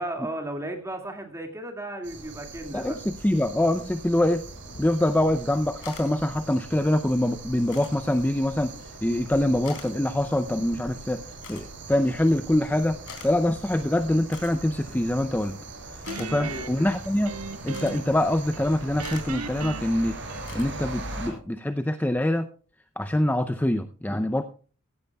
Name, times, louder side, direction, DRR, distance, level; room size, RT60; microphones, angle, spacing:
voice 1, 0.0-3.0 16.4-16.9, right 1 dB, 15° right, 4 dB, 2.1 m, -35 dB
sound 1, 2.0-21.3, right 2 dB, 55° right, 4.8 m, -41 dB
voice 2, 2.7-4.4 4.8-11.2 11.5-13.0 13.2-15.6 15.9-17.3 17.6-20.1 20.5-22.5 23.0-24.4, left 1 dB, 10° left, 8 dB, 0.5 m, -24 dB
sound 2, 4.5-21.4, left 4 dB, 65° left, 3.7 m, -49 dB
Guitar, 16.1-18.2 18.5-20.8, right 3 dB, 80° right, 1.4 m, -37 dB
16.0 x 15.5 x 2.3 m, 0.39 s
head